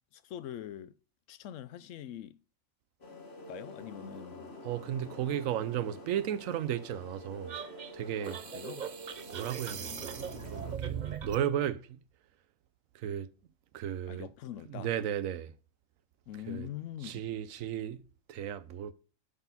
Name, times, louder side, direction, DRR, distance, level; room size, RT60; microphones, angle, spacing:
voice 1, 0.1-1.0 1.3-2.4 3.5-4.5 8.2-8.9 9.7-10.5 14.1-14.9 16.3-17.2, left 11 dB, 75° left, 0.9 m, -44 dB
sound 1, 3.0-10.8, left 1 dB, 50° left, 1.6 m, -48 dB
voice 2, 4.6-7.6 7.9-8.4 9.3-11.0 11.2-12.0 12.9-13.3 13.7-14.3 14.7-15.5 16.5-16.7 17.0-18.0 18.3-18.9, right 10 dB, 85° right, 1.0 m, -34 dB
sound 2, 7.5-11.4, right 8 dB, 50° right, 0.5 m, -40 dB
11.5 x 4.2 x 4.0 m
omnidirectional pair, 1.4 m